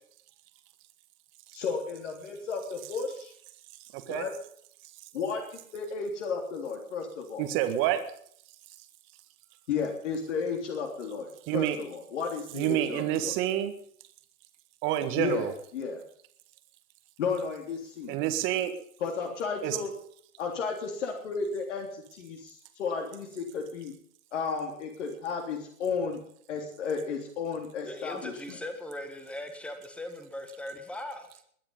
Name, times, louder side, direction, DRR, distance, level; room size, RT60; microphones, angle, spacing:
voice 1, 1.5-3.3 4.1-4.3 5.1-5.4 5.7-7.5 9.7-13.4 15.2-16.0 17.2-18.1 19.0-19.9 20.4-23.9 24.3-26.2 26.5-28.6, left 5 dB, 50° left, 2 dB, 3.5 m, -33 dB
voice 2, 3.9-4.3 7.4-8.0 11.5-11.8 12.5-13.7 14.8-15.5 18.1-18.7 19.6-19.8, right 12 dB, 25° right, 8 dB, 1.8 m, -28 dB
voice 3, 27.8-31.4, left 1 dB, 5° left, 7 dB, 1.7 m, -39 dB
21.5 x 9.7 x 5.5 m, 0.62 s
hypercardioid pair, 135°, 45 cm